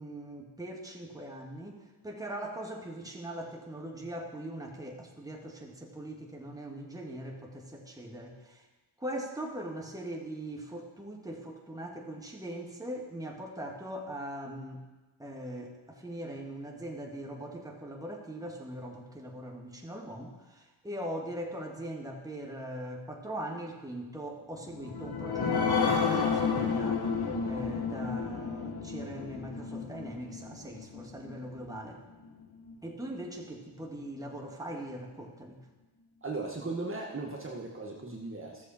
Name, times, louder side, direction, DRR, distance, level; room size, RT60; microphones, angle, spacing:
voice 1, 0.0-8.7 9.0-14.8 15.2-27.1 27.5-32.0 32.8-35.6, right 1 dB, 10° right, 0 dB, 2.1 m, -41 dB
sound 1, 24.7-31.8 32.2-32.3 32.7-32.8, left 5 dB, 60° left, 1.5 m, -31 dB
voice 2, 36.2-38.7, right 3 dB, 30° right, -2 dB, 1.7 m, -37 dB
13.0 x 7.3 x 4.4 m, 1.2 s
supercardioid pair, 45°, 44 cm